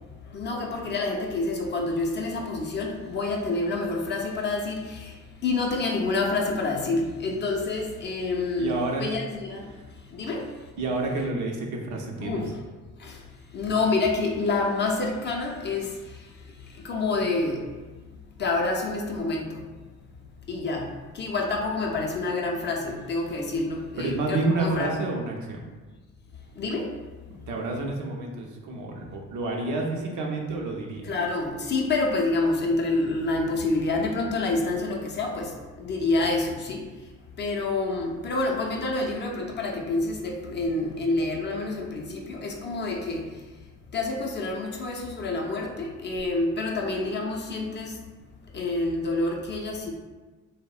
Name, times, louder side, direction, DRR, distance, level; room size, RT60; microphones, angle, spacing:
voice 1, 0.3-5.2 5.4-9.7 10.1-10.5 12.2-12.6 13.0-13.2 13.5-16.2 16.8-17.7 18.4-19.6 20.5-24.9 26.6-27.0 31.0-36.9 37.4-43.3 43.9-48.0 48.5-49.9, left 3 dB, 35° left, 0 dB, 0.4 m, -28 dB
voice 2, 8.6-9.1 9.7-9.9 10.8-12.5 24.0-25.7 27.5-31.2, right 2 dB, 80° right, 0 dB, 0.5 m, -29 dB
2.6 x 2.0 x 2.3 m, 1.3 s
cardioid pair, 90°, 30 cm